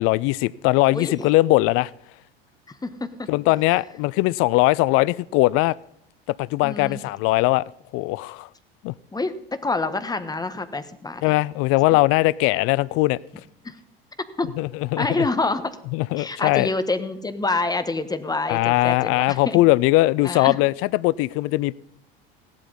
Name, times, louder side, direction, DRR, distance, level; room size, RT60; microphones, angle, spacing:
voice 1, 0.0-1.9 3.3-5.8 6.3-7.6 7.9-8.5 8.8-8.9 11.2-13.2 14.6-15.3 15.9-16.7 18.5-21.7, left 20 dB, 50° left, 0.5 m, -20 dB
voice 2, 0.9-1.3 2.8-3.1 6.6-7.0 9.1-11.3 13.6-13.8 14.4-14.5 15.0-15.8 16.2-19.6 20.2-20.6, left 3 dB, 15° left, 1.4 m, -27 dB
16.5 x 11.5 x 4.2 m
hypercardioid pair, 75°, 29 cm